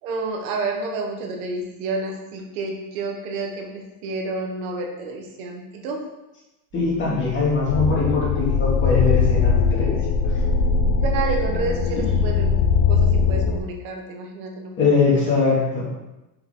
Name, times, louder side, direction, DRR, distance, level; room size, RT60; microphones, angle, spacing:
voice 1, 0.0-6.0 11.0-12.6 12.9-15.2, right 3 dB, 90° right, 2 dB, 1.4 m, -30 dB
voice 2, 6.7-10.0 10.2-10.3 14.8-15.9, left 4 dB, 30° left, -5 dB, 2.4 m, -21 dB
sound 1, 6.7-9.7, right 4 dB, 35° right, 0.9 m, -41 dB
sound 2, 7.7-13.6, left 5 dB, 55° left, 0.7 m, -20 dB
6.6 x 4.8 x 3.8 m, 0.98 s
cardioid pair, 145°, 41 cm